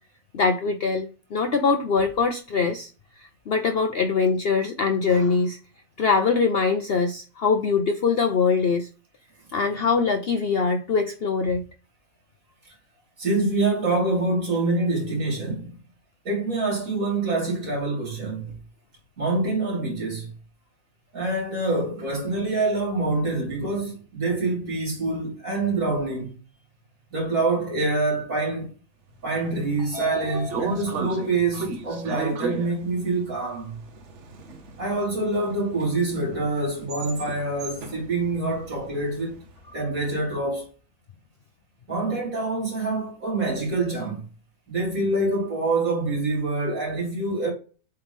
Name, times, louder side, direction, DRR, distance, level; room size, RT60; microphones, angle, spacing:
voice 1, 0.3-2.9 3.2-5.6 6.0-8.9 9.5-11.6, left 5 dB, 55° left, 0.8 m, -23 dB
voice 2, 13.2-15.8 16.2-18.5 19.2-20.3 21.1-26.3 27.1-28.7 29.2-33.8 34.8-39.4 39.7-40.7 41.9-44.2 44.7-47.5, right 2 dB, 75° right, 3.3 m, -26 dB
Train / Sliding door, 29.3-39.5, right 3 dB, 60° right, 1.2 m, -35 dB
8.0 x 3.1 x 5.2 m
omnidirectional pair, 1.5 m